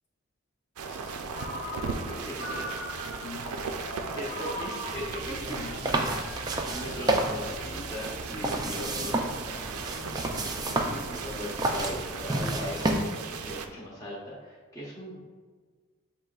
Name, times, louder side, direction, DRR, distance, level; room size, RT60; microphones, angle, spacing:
voice 1, 0.8-1.7 3.2-4.5 5.4-6.2 6.8-7.7 8.3-10.4, left 2 dB, 65° left, -5 dB, 1.5 m, -44 dB
sound 1, 0.8-13.7, right 5 dB, 90° right, 0.4 m, -37 dB
Ringtone, 1.3-3.4 4.2-7.6, left 1 dB, 45° left, 0.5 m, -41 dB
voice 2, 2.0-2.9 4.1-5.3 6.0-6.2 6.7-9.2 10.6-15.2, equal, 15° left, -8 dB, 0.9 m, -39 dB
sound 2, 4.9-13.0, right 2 dB, 20° right, 0.3 m, -31 dB
7.5 x 3.0 x 2.4 m, 1.5 s
head